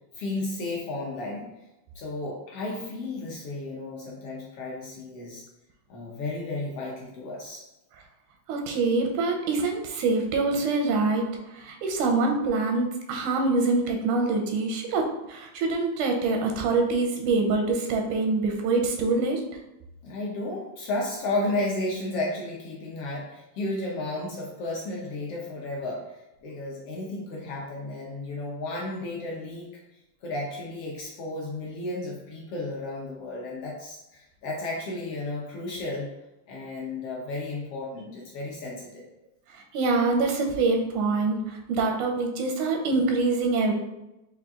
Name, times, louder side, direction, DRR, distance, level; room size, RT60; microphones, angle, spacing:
voice 1, 0.2-1.5 1.9-5.4 5.9-7.6 20.0-29.7 30.2-36.1 36.5-39.1, left 2 dB, 70° left, -3 dB, 1.4 m, -33 dB
voice 2, 8.5-11.2 11.5-19.4 39.7-43.7, right 3 dB, 90° right, 2 dB, 2.2 m, -25 dB
5.8 x 2.5 x 3.6 m, 0.93 s
omnidirectional pair, 3.4 m